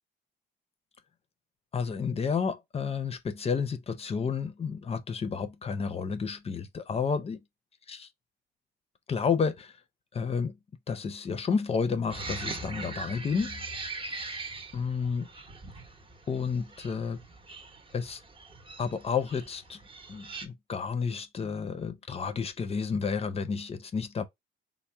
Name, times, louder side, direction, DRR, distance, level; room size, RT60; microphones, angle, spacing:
voice 1, 1.7-7.4 7.9-8.1 9.1-9.8 10.1-10.6 10.9-13.6 14.7-15.3 16.3-17.2 17.9-18.2 18.8-19.8 20.1-24.2, left 5 dB, 30° left, 0.5 m, -31 dB
sound 1, 12.1-20.5, right 3 dB, 25° right, 0.8 m, -41 dB
3.4 x 2.1 x 4.1 m
cardioid pair, 115°, 19 cm